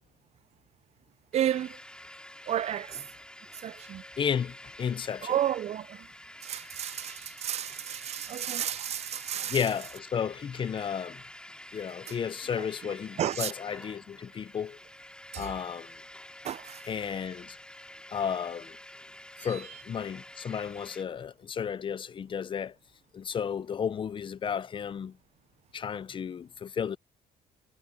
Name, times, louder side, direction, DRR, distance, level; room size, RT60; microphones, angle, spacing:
sound 1, 1.3-21.0, left 1 dB, 5° left, 4.2 m, -48 dB
voice 1, 1.3-1.8 2.5-3.0 3.5-4.0 5.2-6.1 6.4-9.7 12.1-12.2 12.6-13.5 15.3-15.5 16.4-16.8 19.4-19.8, right 11 dB, 40° right, 0.4 m, -32 dB
voice 2, 4.2-5.4 9.5-11.2 11.7-14.8 15.4-15.9 16.9-17.6 18.1-18.8 19.4-22.7 23.1-25.2 25.7-27.0, left 7 dB, 30° left, 0.5 m, -33 dB
cardioid pair, 110°, 17 cm